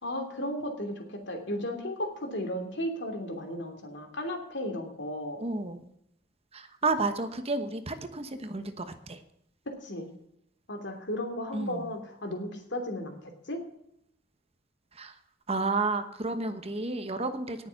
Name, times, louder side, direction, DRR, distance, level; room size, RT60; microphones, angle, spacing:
voice 1, 0.0-5.4 9.7-10.1 10.7-13.6, left 1 dB, 65° left, 4 dB, 2.9 m, -35 dB
voice 2, 5.4-5.8 6.5-9.2 11.5-11.8 15.0-15.1 15.5-17.7, right 3 dB, 30° right, 9 dB, 1.1 m, -31 dB
18.5 x 7.0 x 5.9 m, 0.76 s
head